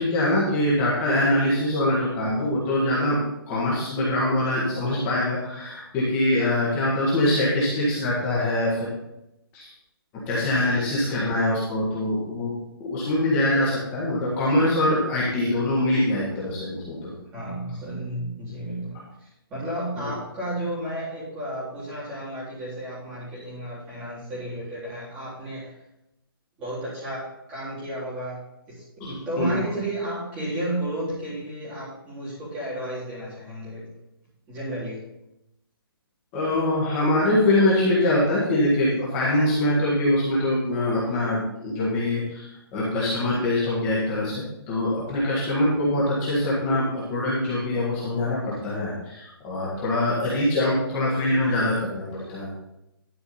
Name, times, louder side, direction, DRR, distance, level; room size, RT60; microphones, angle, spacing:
voice 1, 0.0-3.2 3.5-8.9 9.5-9.7 10.1-17.1 20.0-20.1 29.0-29.7 36.3-52.5, left 1 dB, 15° left, -7 dB, 1.7 m, -23 dB
voice 2, 17.3-25.7 26.6-28.4 28.7-33.9 34.5-35.0 41.0-41.2, right 1 dB, 10° right, -9 dB, 3.7 m, -33 dB
11.5 x 5.1 x 5.5 m, 0.86 s
hypercardioid pair, 175°, 13 cm